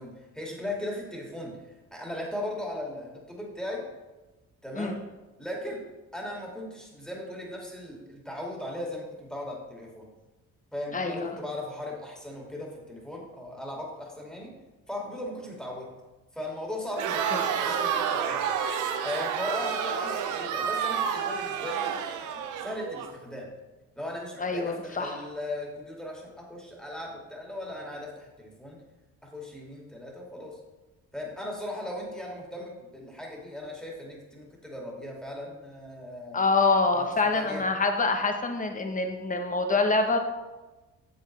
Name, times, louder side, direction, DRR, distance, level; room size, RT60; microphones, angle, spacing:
voice 1, 0.0-1.6 1.9-3.8 4.6-5.0 5.4-5.8 6.1-10.1 10.7-14.5 14.9-15.9 16.3-18.4 19.0-23.5 24.0-28.8 29.2-30.6 31.1-36.4 36.9-37.1 37.3-37.6, left 1 dB, ahead, -3 dB, 2.3 m, -38 dB
voice 2, 10.9-11.3 17.3-17.4 24.4-25.2 36.3-40.2, left 3 dB, 25° left, 5 dB, 1.1 m, -26 dB
Crowd, 16.9-23.1, right 7 dB, 90° right, 0.7 m, -29 dB
8.1 x 7.4 x 3.3 m, 1.1 s
cardioid pair, 90°, 30 cm